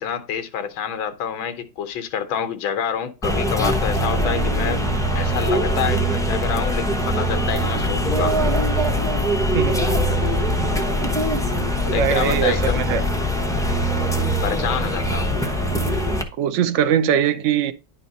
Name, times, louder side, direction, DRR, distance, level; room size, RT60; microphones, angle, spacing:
voice 1, 0.0-4.8 5.2-8.4 11.8-12.8 14.4-15.4, left 8 dB, 75° left, 1.6 m, -27 dB
sound 1, 3.2-16.2, equal, 5° left, 0.3 m, -22 dB
voice 2, 9.5-9.9 11.8-13.0 16.4-17.7, right 9 dB, 90° right, 0.6 m, -21 dB
10.5 x 4.4 x 4.0 m
omnidirectional pair, 2.2 m